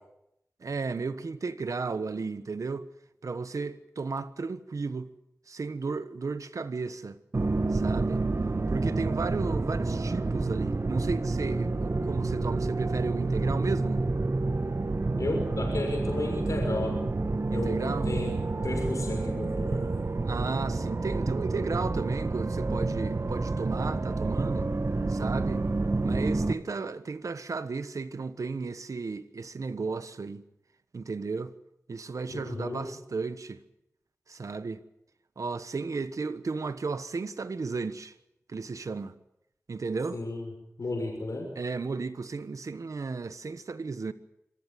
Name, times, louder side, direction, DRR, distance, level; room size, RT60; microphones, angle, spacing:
voice 1, 0.6-2.9 3.2-5.1 5.5-8.2 8.7-14.1 17.5-18.1 20.2-24.7 25.1-25.6 26.0-30.4 30.9-31.5 31.9-33.6 34.3-34.8 35.4-38.1 38.5-39.2 39.7-40.2 41.6-44.1, right 4 dB, 85° right, 1.2 m, -34 dB
sound 1, 7.3-26.5, right 3 dB, 55° right, 1.2 m, -29 dB
voice 2, 15.2-17.0 17.5-18.4 18.6-19.8 32.3-32.9 40.1-40.5 40.8-41.5, left 2 dB, 80° left, 6.6 m, -33 dB
26.0 x 15.0 x 9.3 m
cardioid pair, 40°, 5 cm